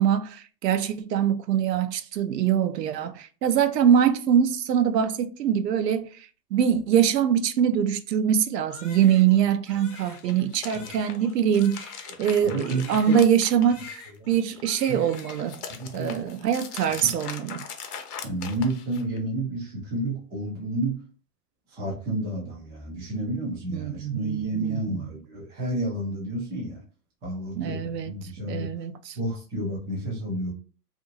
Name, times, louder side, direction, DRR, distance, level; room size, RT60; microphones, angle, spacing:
voice 1, 0.0-11.9 12.2-15.5 15.9-17.7 23.7-25.1 27.6-28.1 28.5-29.2, right 9 dB, 85° right, 0.6 m, -23 dB
Crying sobbing, 8.7-13.4 13.6-14.4 14.6-15.6, left 5 dB, 30° left, 0.9 m, -46 dB
sound 1, 10.0-14.2 14.6-19.2, left 7 dB, 75° left, 0.8 m, -41 dB
voice 2, 12.4-13.2 14.2-14.3 14.9-15.1 15.7-16.4 17.0-17.1 18.2-21.0 21.7-26.8 27.2-27.8 28.0-28.7 29.2-30.5, right 2 dB, 10° right, 0.3 m, -30 dB
2.8 x 2.5 x 2.7 m
hypercardioid pair, 120°, 47 cm